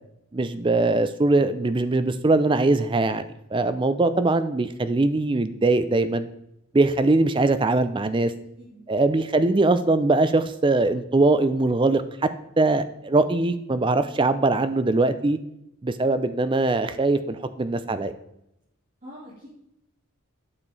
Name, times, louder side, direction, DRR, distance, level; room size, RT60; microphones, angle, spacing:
voice 1, 0.3-3.2 3.5-6.3 6.7-8.3 8.9-12.3 12.6-15.4 15.8-18.1, right 2 dB, 20° right, 11 dB, 0.4 m, -21 dB
voice 2, 19.0-19.5, equal, 35° right, -10 dB, 3.1 m, -44 dB
8.8 x 6.7 x 4.0 m, 0.82 s
head